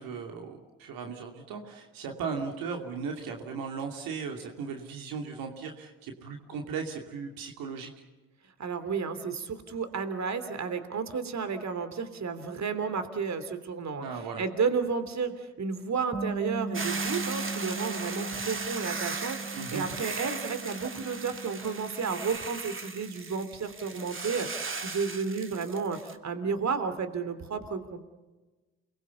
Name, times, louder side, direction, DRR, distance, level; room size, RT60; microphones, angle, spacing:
voice 1, 0.0-7.9 14.0-14.4 19.5-19.8, right 5 dB, 80° right, 3 dB, 2.8 m, -37 dB
voice 2, 8.6-14.1 14.4-28.0, right 5 dB, 50° right, 10 dB, 3.2 m, -32 dB
Bass guitar, 16.1-22.4, right 2 dB, 10° left, 3.4 m, -38 dB
Hiss / Boiling, 16.7-26.1, right 4 dB, 35° right, 2.7 m, -37 dB
29.0 x 21.5 x 7.0 m, 1.2 s
hypercardioid pair, 50°, 34 cm